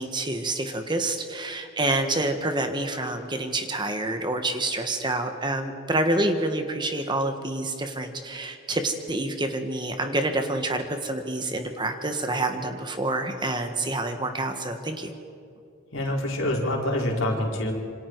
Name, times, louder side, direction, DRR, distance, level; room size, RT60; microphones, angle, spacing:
voice 1, 0.0-15.1, right 2 dB, 20° right, 6 dB, 1.5 m, -27 dB
voice 2, 15.9-17.7, left 1 dB, 75° left, -1 dB, 4.6 m, -26 dB
27.0 x 26.0 x 4.7 m, 2.4 s
head